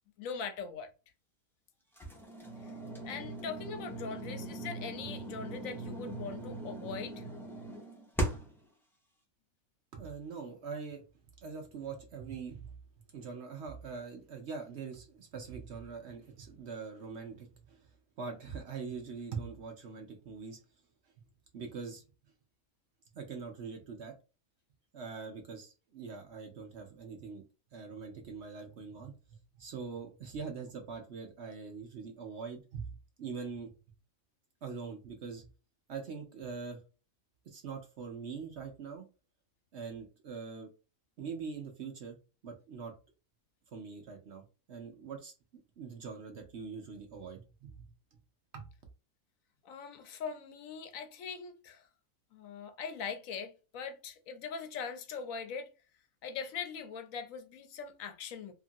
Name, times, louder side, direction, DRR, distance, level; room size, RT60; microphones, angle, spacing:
voice 1, 0.2-0.9 2.6-2.7 3.0-7.2 49.6-51.9 52.3-55.7 56.2-58.5, left 6 dB, 75° left, 1.0 m, -41 dB
sound 1, 2.0-8.6, right 2 dB, ahead, 0.6 m, -39 dB
voice 2, 9.9-11.0 11.4-12.7 13.1-17.9 18.2-20.6 21.5-22.0 23.1-24.1 24.9-27.4 27.7-33.7 34.6-35.5 35.9-36.8 37.4-39.1 39.7-40.7 41.2-42.2 42.4-42.9 43.7-45.3 45.8-47.8 48.5-48.7, right 5 dB, 55° right, 0.9 m, -43 dB
2.8 x 2.5 x 2.5 m
omnidirectional pair, 1.5 m